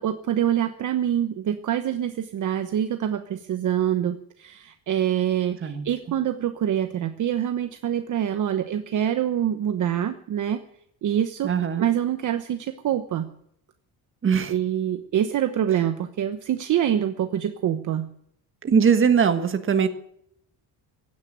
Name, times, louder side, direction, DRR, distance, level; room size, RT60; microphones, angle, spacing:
voice 1, 0.0-10.6 11.0-11.5 11.8-13.3 14.5-18.1, right 10 dB, 50° right, 8 dB, 1.0 m, -25 dB
voice 2, 11.4-11.9 14.2-14.5 18.6-19.9, right 6 dB, 30° right, 8 dB, 1.5 m, -21 dB
16.5 x 9.7 x 9.1 m, 0.71 s
cardioid pair, 170°, 40 cm